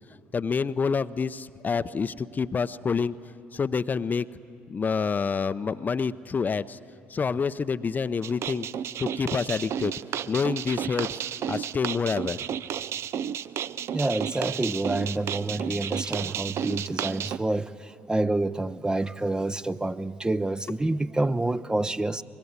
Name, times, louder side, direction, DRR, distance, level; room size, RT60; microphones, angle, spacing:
voice 1, 0.3-3.1 3.5-4.3 4.7-6.8 7.1-8.7 9.0-9.9 10.3-11.2 11.5-12.4, left 5 dB, 30° left, 0.6 m, -27 dB
sound 1, 8.2-17.4, right 9 dB, 50° right, 0.5 m, -32 dB
voice 2, 13.9-22.2, right 2 dB, 15° right, 0.7 m, -28 dB
24.0 x 21.0 x 9.7 m
hypercardioid pair, 55°, 6 cm